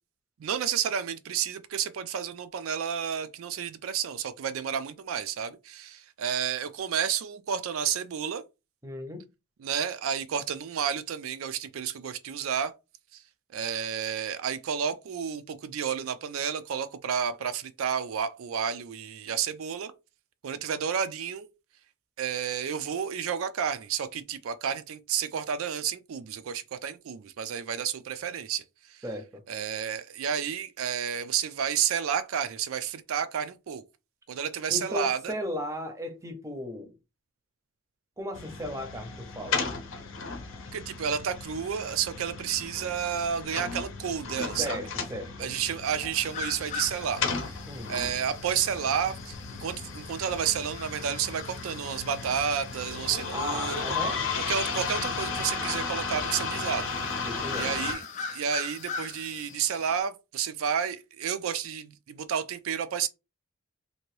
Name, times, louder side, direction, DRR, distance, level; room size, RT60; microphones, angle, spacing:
voice 1, 0.4-8.4 9.6-12.7 13.1-13.2 13.5-19.9 20.4-21.5 22.2-29.0 29.5-33.8 34.3-35.3 40.7-44.8 45.4-47.5 47.9-53.8 54.5-57.3 57.5-58.0 58.3-63.1, right 8 dB, 80° right, 0.4 m, -31 dB
voice 2, 8.8-9.3 29.0-29.4 34.7-36.9 38.2-39.6 44.6-45.5 47.7-48.0 53.3-54.2 57.2-57.7, equal, 15° right, 0.6 m, -36 dB
sound 1, 38.3-57.9, left 4 dB, 65° left, 0.7 m, -35 dB
sound 2, 46.2-60.0, left 5 dB, 35° left, 0.3 m, -42 dB
2.8 x 2.6 x 3.1 m
head